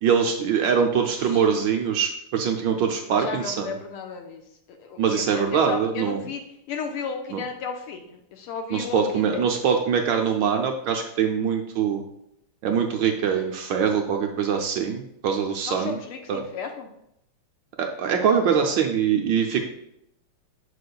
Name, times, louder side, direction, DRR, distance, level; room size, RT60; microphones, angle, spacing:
voice 1, 0.0-3.8 5.0-6.2 7.3-7.4 8.7-12.0 12.6-16.0 16.3-16.4 17.8-19.6, right 7 dB, 70° right, 3 dB, 1.2 m, -23 dB
voice 2, 3.2-4.4 4.7-6.4 6.7-9.4 15.6-16.9, left 6 dB, 85° left, 4 dB, 1.8 m, -34 dB
7.1 x 6.6 x 2.3 m, 0.78 s
omnidirectional pair, 2.4 m